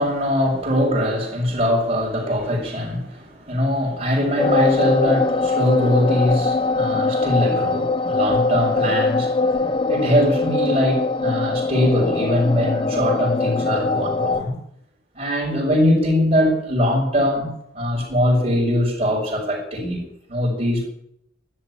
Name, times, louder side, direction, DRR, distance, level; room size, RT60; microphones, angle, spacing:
voice 1, 0.0-9.6 9.9-14.6 15.1-20.0 20.3-20.9, left 1 dB, 40° right, 5.6 m, -21 dB
sound 1, 4.4-14.4, left 3 dB, 30° left, 0.9 m, -22 dB
13.0 x 11.5 x 9.6 m
head